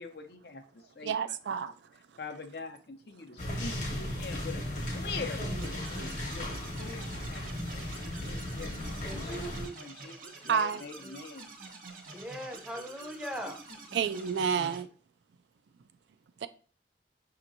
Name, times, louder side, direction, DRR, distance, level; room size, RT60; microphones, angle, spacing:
voice 1, 0.0-1.7 2.2-4.6 4.9-5.9 6.3-7.7 8.0-9.4 9.7-11.5 14.5-14.9, left 4 dB, 60° left, 0.6 m, -44 dB
voice 2, 1.1-1.7 10.5-10.8 13.9-14.9 16.4-16.5, right 7 dB, 80° right, 0.4 m, -29 dB
sound 1, 3.4-9.7, left 1 dB, 45° left, 1.0 m, -36 dB
sound 2, 5.6-14.8, right 3 dB, 50° right, 0.7 m, -48 dB
voice 3, 9.0-9.6 11.0-11.1 12.1-13.6, equal, 5° right, 0.6 m, -40 dB
6.0 x 2.9 x 2.6 m
head